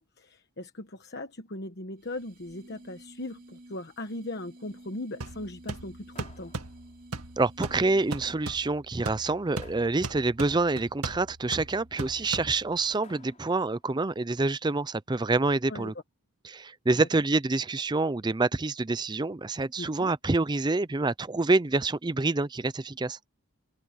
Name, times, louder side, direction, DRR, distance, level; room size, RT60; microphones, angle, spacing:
voice 1, 0.0-6.5 15.7-15.9 17.0-17.1 19.8-20.1, left 1 dB, 50° left, 1.2 m, -39 dB
sound 1, 2.0-8.5, right 1 dB, 40° right, 3.3 m, -52 dB
sound 2, 5.2-12.9, right 2 dB, 85° right, 2.2 m, -39 dB
sound 3, 6.1-7.2 9.6-10.6 13.0-13.9, left 3 dB, 30° left, 3.5 m, -57 dB
voice 2, 7.4-15.9 16.4-23.2, right 3 dB, 20° right, 0.5 m, -27 dB
head